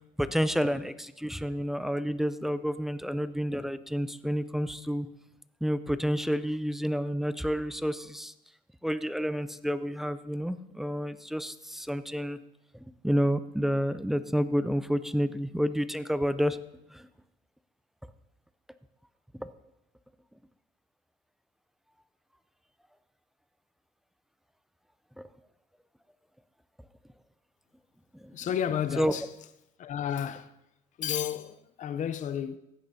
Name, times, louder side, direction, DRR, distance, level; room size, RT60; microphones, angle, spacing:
voice 1, 0.2-5.1 5.6-8.3 8.8-12.4 12.7-16.6 16.9-17.1 19.4-19.5 25.2-25.3 28.1-28.4 29.0-29.2, equal, ahead, 0.4 m, -29 dB
voice 2, 28.3-29.2 29.8-30.5 31.0-32.6, left 9 dB, 45° left, 0.6 m, -32 dB
15.0 x 10.0 x 2.7 m
cardioid pair, 110°, 17 cm